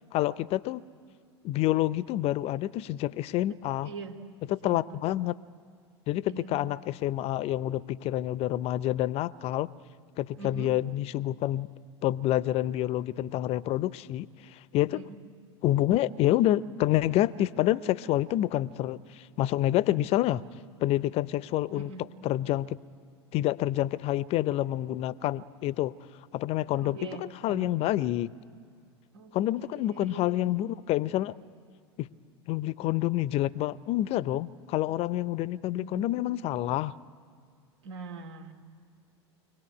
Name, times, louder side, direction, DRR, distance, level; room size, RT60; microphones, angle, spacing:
voice 1, 0.1-0.8 1.4-3.9 4.5-5.4 6.1-9.7 10.2-11.7 12.0-15.0 15.6-20.4 20.8-21.9 22.2-22.8 23.3-25.9 26.3-28.3 29.3-31.3 32.0-32.1 32.5-36.9, left 14 dB, 45° left, 19 dB, 0.6 m, -28 dB
voice 2, 3.5-4.2 4.5-5.0 6.3-6.6 10.4-10.7 14.9-15.2 21.7-22.0 26.8-27.8 29.1-30.6 35.7-36.1 37.8-38.5, right 4 dB, 75° right, 4 dB, 2.4 m, -43 dB
25.0 x 18.0 x 9.8 m, 2.2 s
hypercardioid pair, 90°, 15 cm